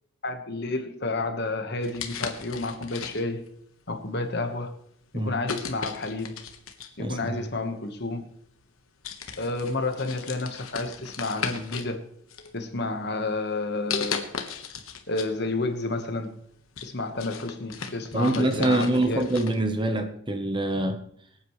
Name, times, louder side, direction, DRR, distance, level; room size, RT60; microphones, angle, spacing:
voice 1, 0.2-3.5 3.9-4.8 5.1-6.4 7.0-8.2 9.4-12.0 12.5-14.3 15.1-16.4 16.8-19.2, left 2 dB, 50° left, 6 dB, 1.3 m, -30 dB
sound 1, 1.8-3.5 4.2-4.4 5.4-7.0 8.1-8.2 8.6-8.8 9.0-11.9 12.3-13.0 13.9-15.3 15.7-15.8 16.3-19.6, left 6 dB, 85° left, 1.3 m, -36 dB
voice 2, 7.0-7.5 18.1-21.0, right 2 dB, 20° right, 7 dB, 1.0 m, -25 dB
24.0 x 8.8 x 3.2 m, 0.70 s
head